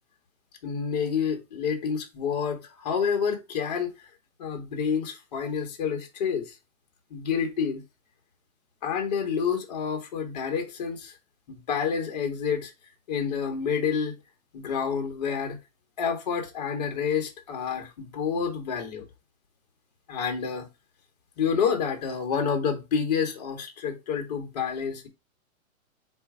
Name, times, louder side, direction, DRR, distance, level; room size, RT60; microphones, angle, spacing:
voice 1, 0.6-3.9 4.4-6.5 7.1-7.8 8.8-11.1 11.5-12.7 13.1-14.2 14.5-15.6 16.0-19.1 20.1-20.7 21.4-25.1, left 6 dB, 30° left, 0.8 m, -28 dB
4.4 x 2.4 x 4.6 m
hypercardioid pair, 170°, 42 cm